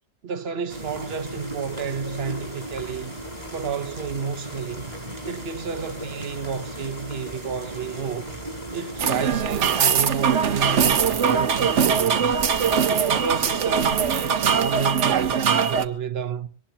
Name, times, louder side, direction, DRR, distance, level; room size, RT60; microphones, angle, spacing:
voice 1, 0.2-3.1 3.5-4.9 5.2-8.4 8.7-12.4 12.9-16.5, right 6 dB, 60° right, 1.2 m, -31 dB
sound 1, 0.7-14.9, right 1 dB, 35° right, 4.6 m, -37 dB
sound 2, 9.0-15.9, right 7 dB, 85° right, 1.3 m, -21 dB
23.0 x 18.5 x 2.8 m
omnidirectional pair, 1.2 m